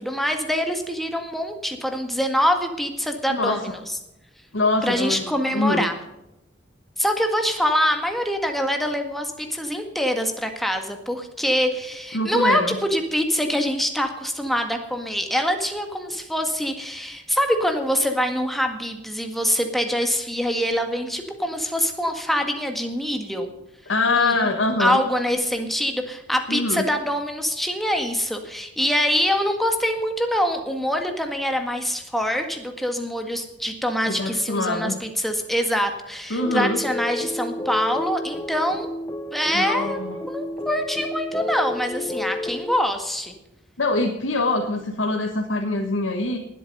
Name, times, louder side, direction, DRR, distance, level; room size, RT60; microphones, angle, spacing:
voice 1, 0.0-3.8 4.8-6.0 7.0-23.5 24.2-24.5 24.8-38.9 39.3-40.0 40.3-43.3, equal, ahead, 4 dB, 1.7 m, -24 dB
voice 2, 4.5-5.9 12.1-12.8 23.9-25.0 26.5-26.8 34.1-34.9 36.3-36.8 39.5-40.2 43.8-46.4, left 2 dB, 85° left, 3 dB, 1.4 m, -24 dB
sound 1, 36.4-42.8, left 1 dB, 20° left, 0.5 m, -31 dB
19.0 x 8.4 x 5.4 m, 0.91 s
head